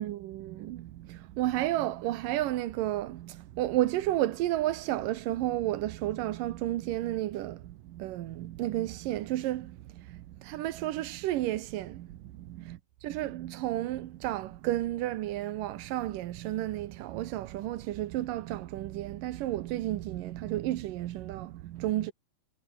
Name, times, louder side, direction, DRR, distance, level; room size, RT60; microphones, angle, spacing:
voice 1, 0.0-12.8 13.0-22.1, right 14 dB, 75° right, 2.6 m, -32 dB
omnidirectional pair, 4.1 m